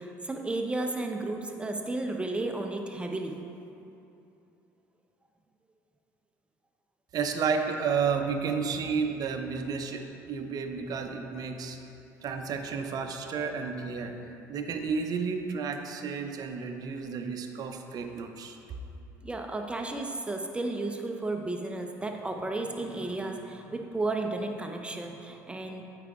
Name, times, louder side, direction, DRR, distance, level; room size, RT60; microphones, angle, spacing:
voice 1, 0.0-3.4 19.2-25.8, right 2 dB, 10° right, 3 dB, 0.7 m, -33 dB
voice 2, 7.1-11.8 12.2-14.1 14.5-18.6, right 5 dB, 50° right, 5 dB, 0.6 m, -31 dB
8.1 x 4.9 x 3.6 m, 2.8 s
hypercardioid pair, 70°, 9 cm